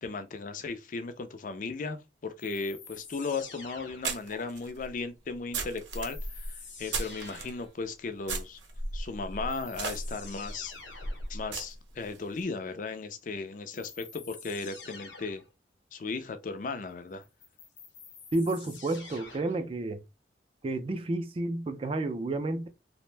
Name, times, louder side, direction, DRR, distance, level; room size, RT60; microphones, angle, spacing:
voice 1, 0.0-8.6 8.9-10.7 11.3-15.4 15.9-17.2, left 4 dB, 45° left, 0.4 m, -36 dB
sound 1, 2.4-4.4 5.9-7.7 9.0-9.1 9.5-11.3 13.7-15.5 17.2-19.7, left 4 dB, 80° left, 0.8 m, -48 dB
sound 2, 3.0-3.1 4.0-7.5 8.2-12.2, right 3 dB, 75° right, 0.6 m, -36 dB
voice 2, 18.3-20.0 20.6-22.7, right 2 dB, 30° right, 0.3 m, -31 dB
2.5 x 2.1 x 3.1 m
head